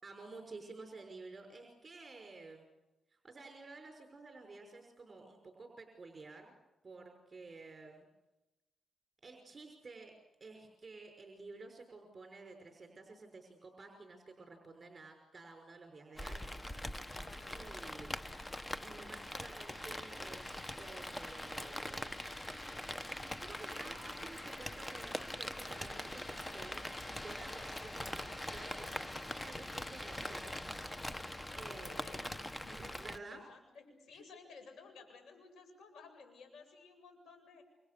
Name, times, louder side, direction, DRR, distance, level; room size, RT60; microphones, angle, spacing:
voice 1, 0.0-2.7 3.1-6.6 6.8-8.1 9.2-10.1 10.4-16.5 17.5-18.5 18.8-22.2 23.3-26.8 27.2-30.6 31.5-32.2 32.7-33.4, right 3 dB, 35° right, 4 dB, 5.7 m, -52 dB
Rain, 16.2-33.2, left 1 dB, 15° left, 1.1 m, -43 dB
voice 2, 17.2-17.6 27.5-27.8 31.4-32.9 33.3-37.6, left 4 dB, 85° left, 6 dB, 7.8 m, -56 dB
29.5 x 25.5 x 6.9 m, 1.0 s
cardioid pair, 80°, 0 cm